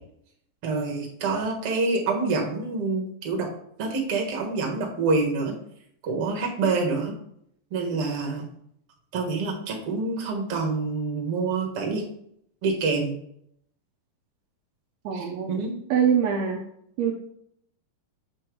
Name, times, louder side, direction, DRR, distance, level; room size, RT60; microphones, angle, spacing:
voice 1, 0.6-3.5 3.8-5.5 6.0-7.1 7.7-8.5 9.1-12.0 12.6-13.2 15.1-15.8, right 3 dB, 50° right, 1 dB, 1.8 m, -27 dB
voice 2, 15.0-15.5 15.9-16.6 17.0-17.1, right 7 dB, 80° right, 0 dB, 1.5 m, -23 dB
8.0 x 3.4 x 4.5 m, 0.70 s
omnidirectional pair, 4.0 m